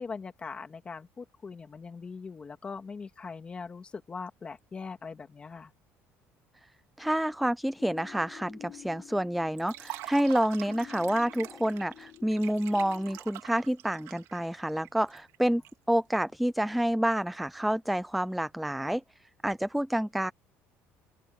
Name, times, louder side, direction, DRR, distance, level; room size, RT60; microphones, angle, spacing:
voice 1, 0.0-5.7, left 5 dB, 20° left, 2.9 m, -41 dB
voice 2, 7.0-15.6 15.9-19.0 19.4-20.3, right 1 dB, ahead, 0.4 m, -28 dB
sound 1, 7.8-13.2, left 12 dB, 55° left, 3.9 m, -51 dB
Liquid, 9.6-15.7, right 16 dB, 75° right, 2.8 m, -44 dB
open air
cardioid pair, 155°, 5 cm